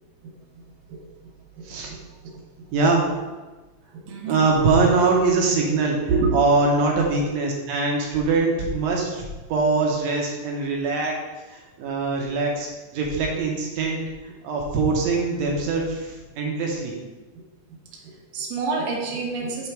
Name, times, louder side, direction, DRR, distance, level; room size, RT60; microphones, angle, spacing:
voice 1, 1.6-2.4 3.9-4.4 6.1-6.4 18.0-19.7, right 4 dB, 85° right, -1 dB, 2.5 m, -28 dB
voice 2, 2.7-3.1 4.3-6.0 6.3-11.2 11.5-16.9, right 3 dB, 70° right, -1 dB, 1.7 m, -23 dB
6.9 x 3.3 x 4.6 m, 1.2 s
omnidirectional pair, 3.8 m